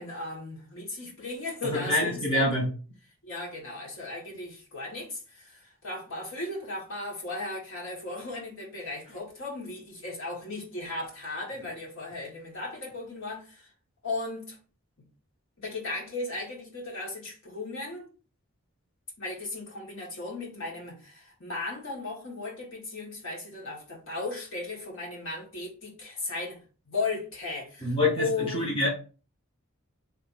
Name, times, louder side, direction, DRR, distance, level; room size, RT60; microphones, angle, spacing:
voice 1, 0.0-2.4 3.2-13.7 14.0-14.6 15.6-18.1 19.2-26.6 26.9-28.7, left 3 dB, 70° left, 1.9 m, -36 dB
voice 2, 1.7-2.7 27.8-28.9, left 1 dB, 25° left, 1.2 m, -26 dB
3.3 x 2.8 x 4.1 m
head